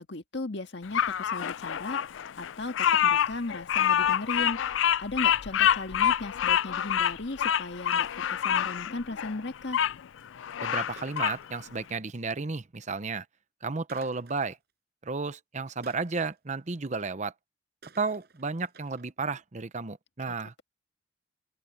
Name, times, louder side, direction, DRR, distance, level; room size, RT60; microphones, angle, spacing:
voice 1, 0.0-2.7 3.0-4.6 5.0-9.8 20.3-20.4, left 2 dB, 65° left, 1.8 m, -36 dB
Bird vocalization bird call bird song, 0.9-9.9 10.4-11.4, left 9 dB, 85° left, 0.4 m, -26 dB
sound 1, 7.9-8.6 11.0-12.0 13.9-14.7 15.8-16.9 17.8-19.1, right 5 dB, 60° right, 6.6 m, -55 dB
voice 2, 10.6-13.2 13.6-14.6 15.0-17.3 18.0-20.6, right 4 dB, 40° right, 0.8 m, -33 dB
open air
head